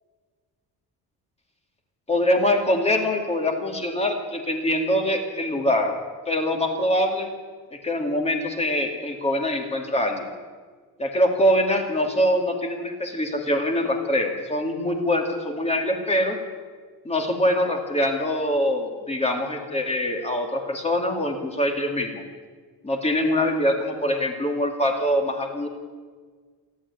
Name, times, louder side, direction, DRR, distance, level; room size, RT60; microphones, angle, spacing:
voice 1, 2.1-5.9 6.3-7.3 7.7-10.3 11.0-16.4 17.0-22.2 22.8-25.7, left 1 dB, 15° left, 3 dB, 2.3 m, -24 dB
27.5 x 10.5 x 9.8 m, 1.5 s
cardioid pair, 180°, 38 cm